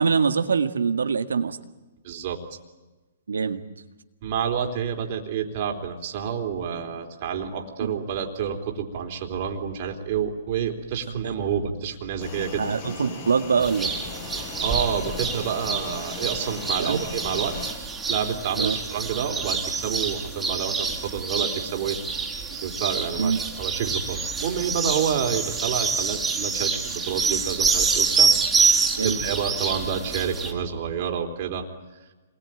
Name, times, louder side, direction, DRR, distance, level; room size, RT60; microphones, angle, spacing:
voice 1, 0.0-1.6 3.3-3.6 12.6-13.9 16.8-17.0 18.6-18.8 23.2-23.4 29.0-29.2, right 5 dB, 90° right, 7 dB, 1.8 m, -23 dB
voice 2, 2.0-2.4 4.2-12.8 14.6-17.6 18.1-22.0 22.5-31.7, right 7 dB, 45° right, 3 dB, 3.8 m, -29 dB
sound 1, 12.2-17.7, left 5 dB, 45° left, 6.6 m, -38 dB
sound 2, 13.6-30.5, right 5 dB, 10° right, 4.3 m, -27 dB
27.0 x 21.5 x 9.1 m, 1.2 s
hypercardioid pair, 140°, 0 cm